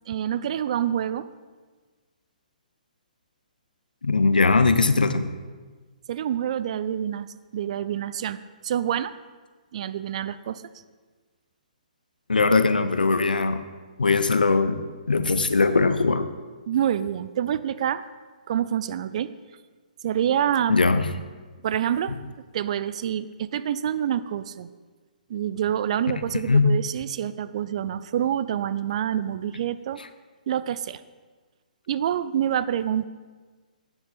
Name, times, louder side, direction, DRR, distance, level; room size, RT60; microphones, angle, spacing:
voice 1, 0.1-1.3 6.1-7.3 7.5-9.1 9.7-10.6 16.7-18.0 18.5-19.3 20.0-20.8 21.6-22.2 22.5-24.7 25.3-30.0 30.5-31.0 31.9-33.0, right 10 dB, 50° right, 14 dB, 0.4 m, -27 dB
voice 2, 4.0-5.3 12.3-13.6 14.0-14.8 15.1-16.3 20.7-21.1 26.5-26.7, left 4 dB, 80° left, 11 dB, 0.7 m, -20 dB
9.0 x 7.9 x 4.2 m, 1.4 s
figure-of-eight pair, 130°, 5 cm